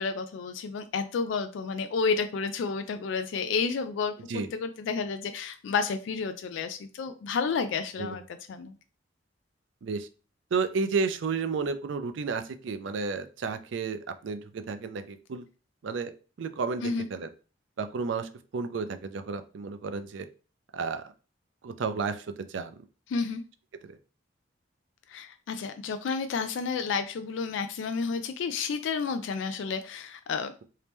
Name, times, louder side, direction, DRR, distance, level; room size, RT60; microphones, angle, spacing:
voice 1, 0.0-8.8 16.8-17.1 23.1-23.4 25.1-30.5, left 5 dB, 75° left, 9 dB, 0.3 m, -31 dB
voice 2, 10.5-15.4 15.8-16.1 16.4-17.3 17.8-20.3 20.7-21.0 21.6-22.7 23.9-24.0, right 4 dB, 75° right, 10 dB, 0.4 m, -32 dB
3.0 x 2.8 x 3.4 m, 0.36 s
head